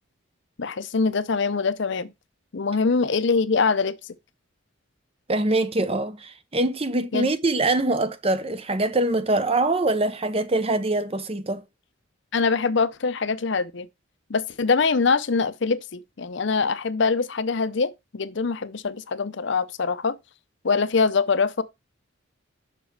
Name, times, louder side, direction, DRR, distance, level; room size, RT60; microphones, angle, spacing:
voice 1, 0.6-2.1 2.5-4.0 7.1-7.3 12.3-13.9 14.3-20.2 20.6-21.6, left 4 dB, 60° left, 0.6 m, -23 dB
voice 2, 5.3-11.6, right 2 dB, 30° right, 0.7 m, -24 dB
6.9 x 5.1 x 4.7 m
head